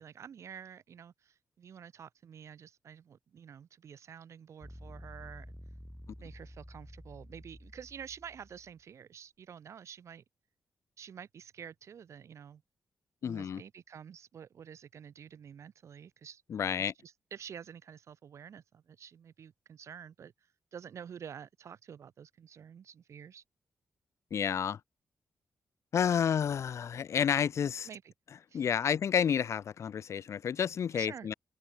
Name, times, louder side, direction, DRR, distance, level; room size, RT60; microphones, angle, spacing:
voice 1, 0.0-5.5 6.2-10.2 11.0-12.6 13.2-16.4 16.8-20.3 20.7-23.4 27.8-28.1 28.5-28.9 30.9-31.3, right 8 dB, 70° right, 6.6 m, -49 dB
sound 1, 4.6-8.8, equal, 5° left, 6.5 m, -50 dB
voice 2, 13.2-13.6 16.5-16.9 24.3-24.8 25.9-27.9 28.5-31.3, left 8 dB, 70° left, 2.0 m, -30 dB
open air
cardioid pair, 80°, 5 cm